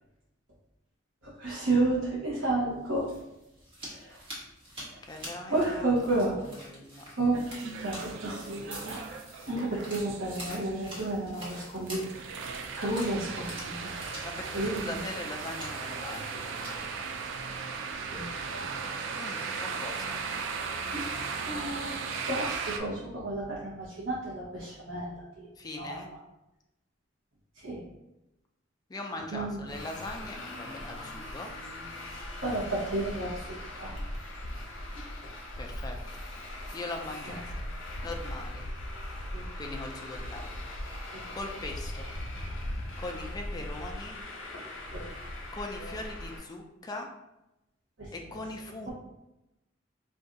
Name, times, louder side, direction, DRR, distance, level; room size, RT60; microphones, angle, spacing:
voice 1, 1.2-3.1 3.8-4.2 4.9-5.0 5.5-6.3 7.1-9.0 9.5-12.1 12.8-14.0 14.5-15.0 18.1-18.7 20.9-21.0 21.4-22.0 22.2-25.5 25.8-25.9 27.6-27.8 29.3-29.6 32.4-34.0 34.6-34.8 37.3-37.4 39.3-39.4 41.1-41.2 44.9-45.1 45.8-45.9 48.0-48.4, right 2 dB, 85° right, -6 dB, 0.8 m, -32 dB
sound 1, 2.8-18.0, equal, 25° right, 0.9 m, -47 dB
voice 2, 5.1-7.1 14.2-16.5 19.1-20.2 25.6-26.1 28.9-31.5 35.6-36.2 36.7-37.7 38.0-38.7 39.6-40.5 41.3-42.1 43.0-44.2 45.5-47.1 48.1-48.9, left 2 dB, 20° left, 2 dB, 0.3 m, -40 dB
sound 2, 7.3-22.8, right 5 dB, 65° right, 0.3 m, -37 dB
Traffic noise roadway noise, 29.7-46.4, left 1 dB, 85° left, 0.8 m, -39 dB
2.6 x 2.3 x 3.8 m, 0.93 s
head